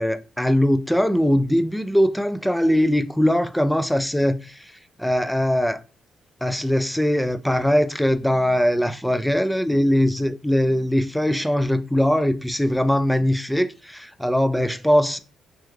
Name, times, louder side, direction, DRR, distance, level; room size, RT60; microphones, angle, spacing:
voice 1, 0.0-4.7 5.0-5.8 6.4-15.2, equal, 5° left, 0.3 m, -21 dB
3.4 x 3.1 x 2.2 m
cardioid pair, 90°, 0 cm